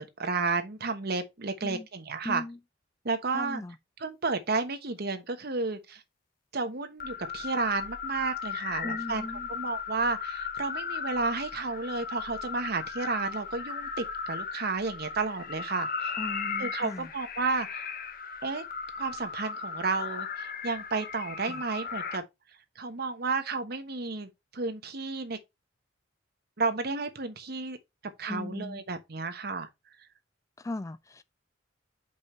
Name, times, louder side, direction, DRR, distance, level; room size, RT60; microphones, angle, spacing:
voice 1, 0.0-2.4 3.0-3.6 4.0-6.0 6.5-16.1 16.6-17.9 18.4-18.6 19.0-22.2 22.8-25.4 26.6-27.8 28.2-29.7, right 4 dB, 55° right, 1.1 m, -32 dB
voice 2, 2.2-2.6 3.3-3.8 8.8-9.5 16.2-17.1 21.5-21.6 28.3-28.8 30.6-31.2, left 2 dB, 15° left, 0.3 m, -38 dB
sound 1, 7.0-22.2, left 6 dB, 50° left, 0.9 m, -37 dB
5.3 x 5.3 x 4.3 m
head